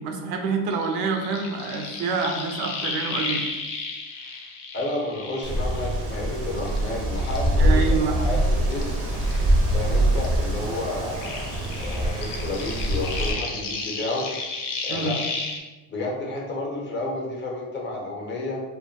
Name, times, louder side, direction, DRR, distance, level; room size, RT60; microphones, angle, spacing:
voice 1, 0.0-3.4 7.6-8.2 14.9-15.2, right 5 dB, 85° right, 4 dB, 0.5 m, -27 dB
sound 1, 0.7-6.2 6.6-9.9 10.2-15.6, left 4 dB, 85° left, 0.6 m, -33 dB
voice 2, 4.7-8.8 9.7-11.5 11.8-14.3 14.8-15.1 15.9-18.6, left 2 dB, 30° left, -2 dB, 0.5 m, -31 dB
Wind, 5.4-13.3, right 1 dB, 35° right, 0.4 m, -24 dB
2.2 x 2.1 x 2.6 m, 1.2 s
cardioid pair, 125°, 40 cm